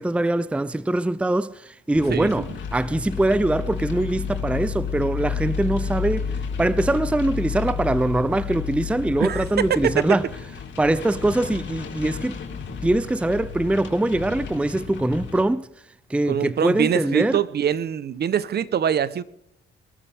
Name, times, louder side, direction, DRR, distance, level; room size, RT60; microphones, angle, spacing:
voice 1, 0.0-6.3 6.6-10.2 10.8-12.4 12.8-15.7 16.1-17.4, right 1 dB, 5° right, 0.5 m, -23 dB
sound 1, 1.9-15.4, left 6 dB, 70° left, 4.2 m, -31 dB
voice 2, 2.1-2.5 9.2-10.0 16.3-19.2, right 9 dB, 55° right, 1.0 m, -24 dB
22.0 x 13.5 x 3.6 m
cardioid pair, 90°, 20 cm